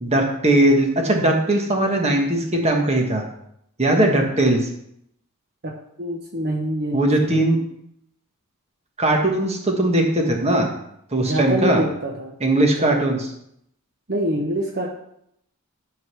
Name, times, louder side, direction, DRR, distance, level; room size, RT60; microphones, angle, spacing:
voice 1, 0.0-3.3 3.8-4.6 6.9-7.6 9.0-10.7 11.1-11.8 12.4-13.2, right 1 dB, 30° right, 1 dB, 1.5 m, -19 dB
voice 2, 5.6-7.5 11.2-12.4 12.6-13.0 14.1-14.9, right 1 dB, 45° right, 0 dB, 1.1 m, -26 dB
11.0 x 4.0 x 6.2 m, 0.74 s
head